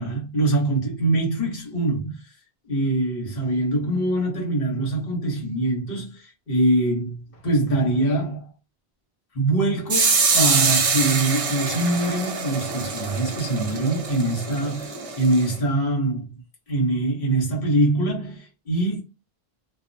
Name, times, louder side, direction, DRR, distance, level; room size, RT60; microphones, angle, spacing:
voice 1, 0.0-2.2 2.7-8.5 9.3-16.3 16.7-19.0, right 2 dB, 60° left, 1.4 m, -23 dB
sound 1, 9.9-15.5, right 4 dB, 45° right, 0.5 m, -24 dB
2.6 x 2.1 x 2.6 m
omnidirectional pair, 1.1 m